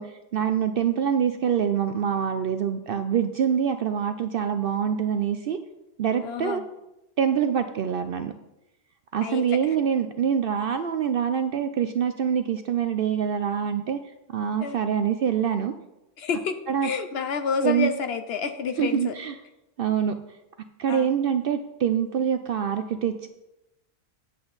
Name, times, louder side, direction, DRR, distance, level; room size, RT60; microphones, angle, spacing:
voice 1, 0.0-5.6 6.0-6.6 7.2-8.3 9.1-14.0 14.3-15.7 16.7-16.9 17.6-17.9 18.8-19.4 19.8-20.2 20.8-23.3, right 8 dB, 65° right, 9 dB, 0.6 m, -25 dB
voice 2, 6.2-6.7 9.2-9.4 14.6-14.8 16.2-16.6 16.8-19.1 20.9-21.1, left 6 dB, 60° left, 9 dB, 0.8 m, -29 dB
9.1 x 7.7 x 4.0 m, 0.93 s
omnidirectional pair, 1.3 m